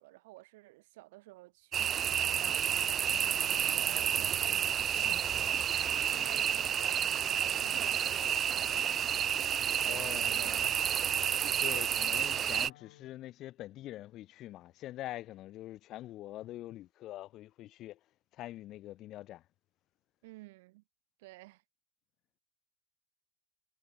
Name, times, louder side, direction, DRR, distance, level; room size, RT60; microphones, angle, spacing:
voice 1, 0.0-10.9 20.2-20.8 21.2-21.6, right 21 dB, 65° right, 6.8 m, -53 dB
sound 1, 1.7-12.7, right 9 dB, 25° right, 0.3 m, -30 dB
Wind instrument woodwind instrument, 5.8-13.2, left 15 dB, 75° left, 4.1 m, -58 dB
voice 2, 9.8-10.4 11.6-18.0 18.3-19.4, left 14 dB, 40° left, 2.5 m, -44 dB
supercardioid pair, 130°, 0 cm